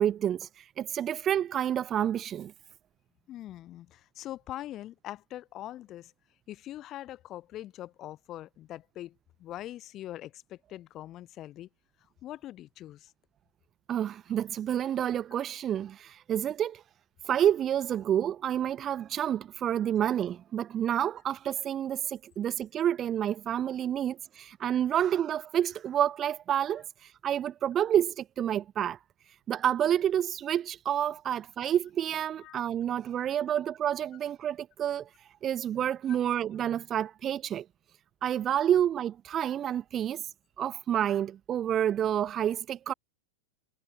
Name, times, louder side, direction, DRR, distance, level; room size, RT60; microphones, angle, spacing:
voice 1, 0.0-2.5 13.9-16.8 17.2-29.0 29.5-35.1 35.4-37.6 38.2-40.2 40.6-42.9, right 10 dB, 25° right, 2.2 m, -29 dB
voice 2, 3.3-6.1 6.5-11.7 12.2-13.1 32.4-32.6 36.1-36.2, left 13 dB, 35° left, 6.6 m, -42 dB
figure-of-eight pair, 90°, 0 cm